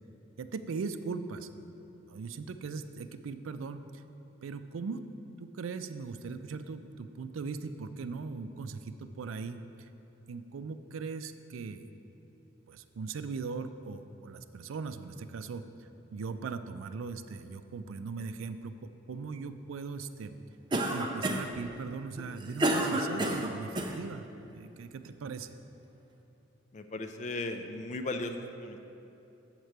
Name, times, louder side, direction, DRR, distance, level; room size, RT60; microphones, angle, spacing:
voice 1, 0.4-1.5 2.1-4.0 4.4-5.0 5.4-9.9 10.3-11.9 12.7-15.6 16.1-18.7 19.1-20.4 20.9-24.3 24.5-25.6, right 4 dB, 90° right, 10 dB, 0.4 m, -39 dB
Cough, 20.7-21.6 22.2-24.0, right 1 dB, 20° right, 0.4 m, -29 dB
voice 2, 26.7-28.8, left 2 dB, 35° left, 7 dB, 0.4 m, -36 dB
7.4 x 4.6 x 6.6 m, 2.9 s
head